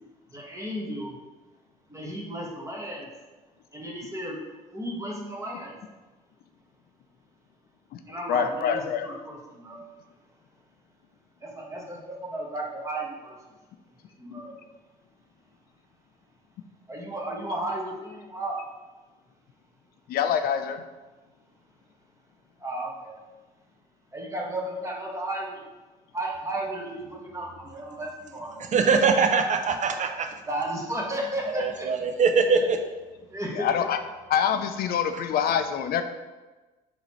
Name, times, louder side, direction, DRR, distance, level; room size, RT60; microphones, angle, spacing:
voice 1, 0.3-1.2 1.9-3.1 3.7-4.4 4.7-5.8 8.1-9.8 11.4-13.4 14.2-14.6 16.9-18.6 22.6-23.2 24.1-25.6 26.1-28.8 30.5-31.9 33.3-33.7, right 1 dB, 15° right, -2 dB, 1.2 m, -34 dB
voice 2, 8.3-9.1 20.1-20.8 33.5-34.0 34.3-36.0, left 8 dB, 55° left, 8 dB, 0.5 m, -25 dB
voice 3, 28.7-30.3 31.5-32.8, right 5 dB, 40° right, 5 dB, 0.6 m, -22 dB
3.9 x 2.9 x 4.3 m, 1.2 s
hypercardioid pair, 60°, 19 cm